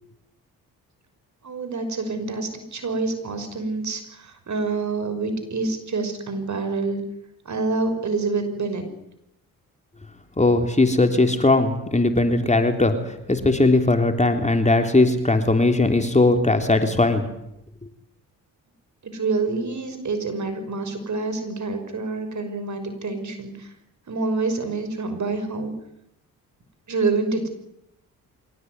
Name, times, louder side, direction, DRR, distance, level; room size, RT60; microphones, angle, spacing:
voice 1, 1.4-7.0 7.4-8.9 19.0-23.7 24.1-25.7 26.9-27.5, right 3 dB, 50° right, 9 dB, 5.9 m, -27 dB
voice 2, 10.4-17.3, left 2 dB, 20° left, 6 dB, 3.6 m, -19 dB
24.0 x 18.0 x 9.6 m, 0.81 s
supercardioid pair, 50°, 37 cm